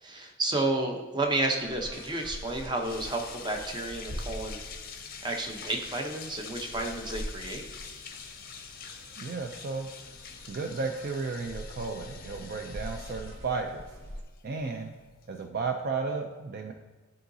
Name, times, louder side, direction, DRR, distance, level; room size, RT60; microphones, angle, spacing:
voice 1, 0.0-4.6 5.2-7.6, right 2 dB, 20° right, 2 dB, 0.7 m, -31 dB
sound 1, 1.6-14.2, equal, 65° right, 0.8 m, -45 dB
sound 2, 1.9-15.5, left 6 dB, 45° left, 0.6 m, -45 dB
voice 2, 9.2-9.9 10.5-13.8 14.4-14.9 15.3-16.7, right 4 dB, 50° right, 4 dB, 0.4 m, -33 dB
10.5 x 3.9 x 2.7 m, 1.3 s
head